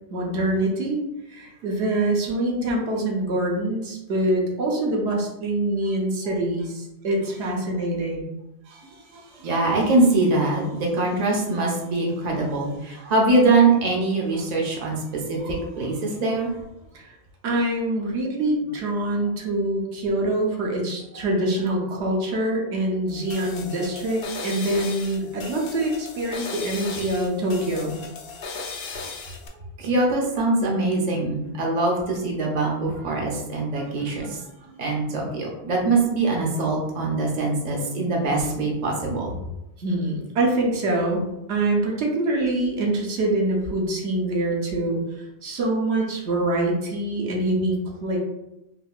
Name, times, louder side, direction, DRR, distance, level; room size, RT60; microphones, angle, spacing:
voice 1, 0.1-1.0 1.3-8.3 16.9-17.1 17.4-28.0 39.8-45.0 45.4-48.2, right 1 dB, 90° right, -1 dB, 1.0 m, -25 dB
voice 2, 9.1-16.6 29.0-29.1 29.8-39.4, right 2 dB, 45° right, -1 dB, 0.7 m, -23 dB
sound 1, 23.1-29.5, left 4 dB, 65° left, 0.7 m, -37 dB
3.6 x 2.7 x 2.4 m, 0.92 s
omnidirectional pair, 1.1 m